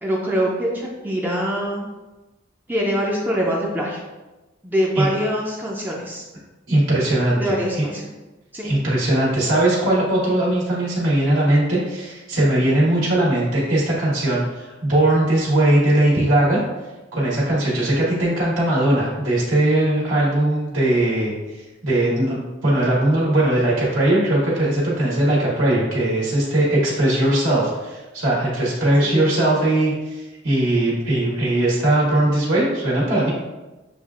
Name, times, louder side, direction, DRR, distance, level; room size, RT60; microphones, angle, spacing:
voice 1, 0.0-1.8 2.7-4.0 4.6-6.2 7.4-8.0 8.5-8.8 29.0-29.3, equal, 10° right, -3 dB, 0.4 m, -24 dB
voice 2, 6.7-7.8 8.6-16.6 17.1-33.3, right 1 dB, 75° right, -6 dB, 1.4 m, -19 dB
6.8 x 2.4 x 2.4 m, 1.1 s
head